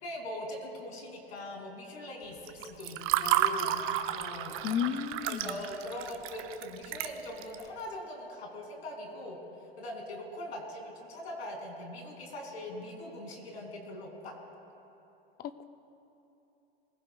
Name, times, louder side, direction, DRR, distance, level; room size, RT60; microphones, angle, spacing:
voice 1, 0.0-4.7 5.3-9.4 9.8-14.3, left 1 dB, 85° left, 1 dB, 2.7 m, -41 dB
Water / Fill (with liquid), 2.5-7.6, right 11 dB, 45° right, 0.7 m, -32 dB
voice 2, 4.6-5.6 15.4-15.6, left 9 dB, 30° left, 12 dB, 0.6 m, -33 dB
20.5 x 15.5 x 2.3 m, 2.9 s
hypercardioid pair, 100°, 31 cm